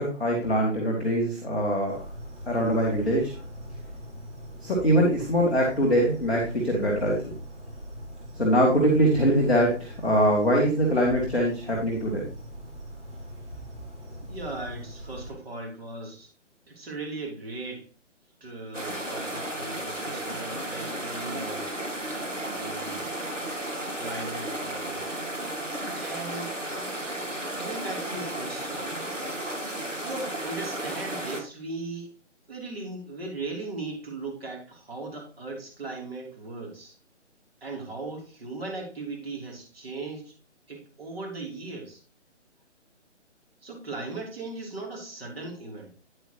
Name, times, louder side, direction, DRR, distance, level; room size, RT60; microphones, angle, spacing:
voice 1, 0.0-2.0 2.5-3.3 4.6-7.3 8.4-12.2, equal, ahead, -9 dB, 0.6 m, -23 dB
sound 1, 1.9-15.3, equal, 70° right, 4.5 m, -41 dB
voice 2, 14.2-16.3 16.7-17.9 18.4-21.7 22.4-23.2 24.0-25.1 25.9-26.6 27.6-29.0 30.0-32.1 32.5-37.0 37.6-40.3 40.7-42.0 43.6-45.9, right 3 dB, 55° right, 0 dB, 3.4 m, -38 dB
sound 2, 18.7-31.4, right 1 dB, 90° right, 2.0 m, -33 dB
9.4 x 7.7 x 3.0 m, 0.34 s
figure-of-eight pair, 145°, 37 cm